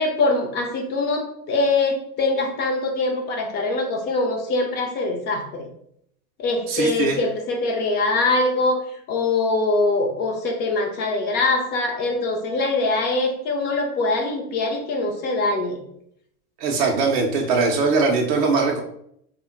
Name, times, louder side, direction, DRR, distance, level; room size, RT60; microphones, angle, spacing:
voice 1, 0.0-5.7 6.4-8.8 9.1-15.8, left 2 dB, 25° left, 2 dB, 0.4 m, -23 dB
voice 2, 6.7-7.2 16.6-18.8, right 4 dB, 35° right, 0 dB, 0.4 m, -21 dB
2.2 x 2.0 x 3.7 m, 0.71 s
hypercardioid pair, 110°, 46 cm